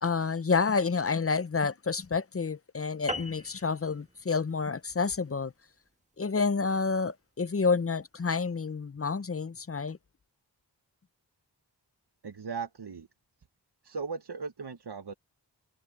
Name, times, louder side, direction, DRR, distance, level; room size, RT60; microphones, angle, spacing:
voice 1, 0.0-5.5 6.2-10.0, left 4 dB, 35° left, 0.6 m, -29 dB
sound 1, 3.1-7.8, equal, 15° right, 1.4 m, -42 dB
voice 2, 12.2-13.1 13.8-15.1, right 5 dB, 65° right, 1.1 m, -37 dB
wide cardioid pair, 45°, 43 cm